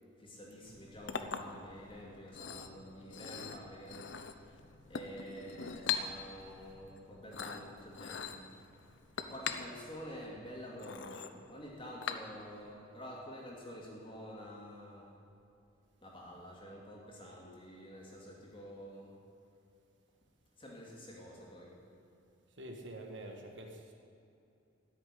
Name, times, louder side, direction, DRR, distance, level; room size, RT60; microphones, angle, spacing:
voice 1, 0.2-4.2 4.9-8.5 9.2-15.2 16.0-19.1 20.6-21.8, equal, 25° left, -3 dB, 2.7 m, -49 dB
Chink clink, 0.6-12.7, left 6 dB, 65° left, 0.7 m, -43 dB
voice 2, 22.6-23.9, right 1 dB, 65° right, 3 dB, 1.6 m, -46 dB
13.5 x 6.6 x 10.0 m, 2.7 s
head